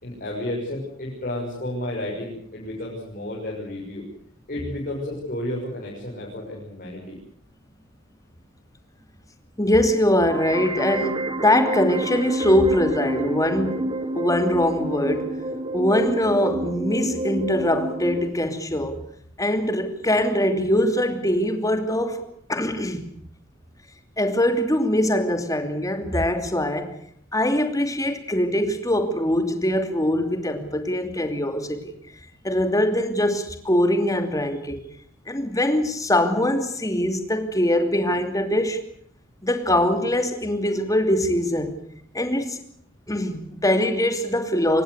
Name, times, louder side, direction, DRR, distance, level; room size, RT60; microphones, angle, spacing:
voice 1, 0.0-4.1 4.5-7.2, left 1 dB, 45° left, -3 dB, 6.7 m, -32 dB
voice 2, 9.6-13.9 14.1-15.3 15.7-19.0 19.4-22.2 22.5-23.1 24.2-26.9 27.3-31.9 32.4-34.8 35.3-38.8 39.4-41.8 42.1-42.6 43.1-44.8, left 1 dB, 15° left, 7 dB, 2.8 m, -22 dB
sound 1, 10.3-18.3, right 1 dB, 25° right, 1.7 m, -29 dB
25.0 x 20.0 x 8.1 m, 0.64 s
head